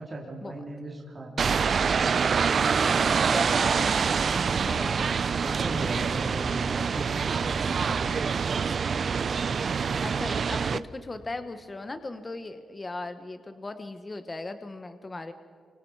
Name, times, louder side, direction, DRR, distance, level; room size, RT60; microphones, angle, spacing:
voice 1, 0.0-1.4 4.6-4.9 5.3-8.0, right 2 dB, 30° right, -2 dB, 2.9 m, -37 dB
sound 1, 1.4-10.8, right 6 dB, 50° right, 0.5 m, -25 dB
voice 2, 2.8-4.0 4.3-5.1 10.0-15.3, left 2 dB, 25° left, 9 dB, 1.0 m, -38 dB
28.0 x 25.0 x 4.7 m, 2.3 s
cardioid pair, 110°, 0 cm